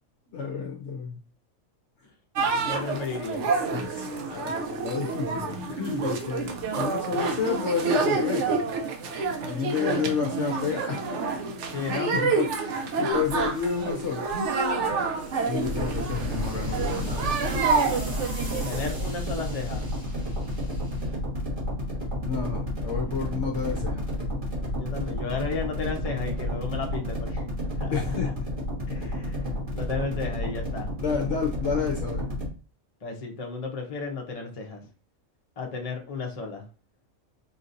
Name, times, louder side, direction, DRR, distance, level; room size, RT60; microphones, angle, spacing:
voice 1, 0.3-1.2 3.7-5.6 6.0-8.6 9.5-11.2 11.9-14.3 15.5-17.3 22.2-24.1 27.9-28.3 29.0-29.3 31.0-32.3, left 6 dB, 60° left, 2 dB, 0.9 m, -30 dB
sound 1, 2.4-18.9, right 4 dB, 65° right, 0.9 m, -28 dB
voice 2, 2.7-3.5 5.7-6.1 11.7-12.1 18.6-19.9 24.6-27.4 27.8-28.3 28.9-30.9 33.0-34.8 35.6-36.6, left 4 dB, 35° left, 1 dB, 0.6 m, -34 dB
sound 2, 13.1-21.7, equal, 15° right, 1.0 m, -46 dB
sound 3, 15.6-32.5, left 1 dB, 35° right, 1.8 m, -31 dB
5.0 x 2.7 x 2.6 m, 0.37 s
omnidirectional pair, 1.5 m